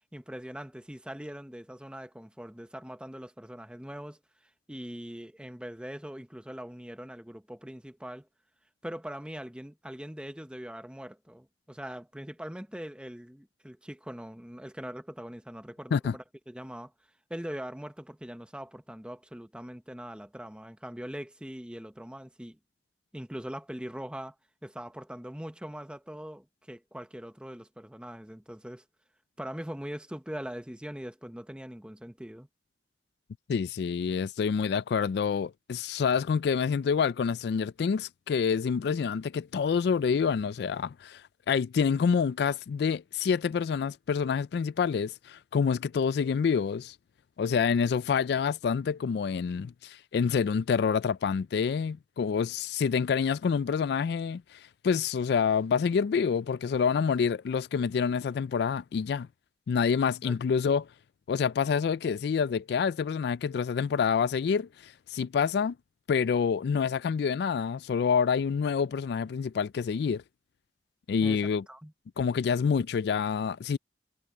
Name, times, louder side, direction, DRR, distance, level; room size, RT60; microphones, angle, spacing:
voice 1, 0.1-4.2 4.7-8.3 8.8-16.9 17.3-22.6 23.1-24.3 24.6-28.8 29.4-32.5 60.2-60.4 71.2-71.9, equal, 5° right, 1.0 m, -41 dB
voice 2, 33.5-46.9 47.4-59.3 59.7-60.9 61.3-65.8 66.1-70.2 71.1-71.6 72.2-73.8, left 6 dB, 65° left, 0.3 m, -27 dB
head